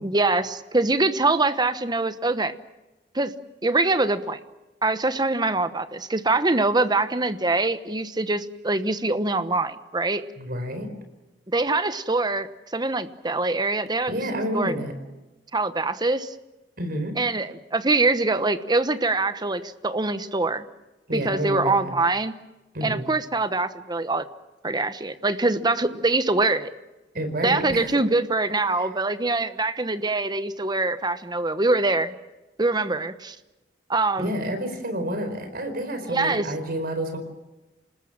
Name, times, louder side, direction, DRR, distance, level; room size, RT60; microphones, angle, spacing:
voice 1, 0.0-2.5 3.1-3.3 3.6-4.4 4.8-10.2 11.5-12.5 12.7-14.1 14.5-14.7 15.5-16.3 17.2-20.6 21.1-22.3 22.8-24.2 24.6-26.7 27.4-32.1 32.6-33.4 33.9-34.4 36.0-36.5, right 2 dB, 25° right, 11 dB, 1.0 m, -24 dB
voice 2, 10.4-10.9 14.1-15.0 16.8-17.1 21.1-21.9 22.7-23.1 27.1-28.0 28.7-28.9 34.2-37.2, right 1 dB, 55° right, 8 dB, 4.6 m, -29 dB
28.0 x 20.0 x 7.4 m, 1.1 s
head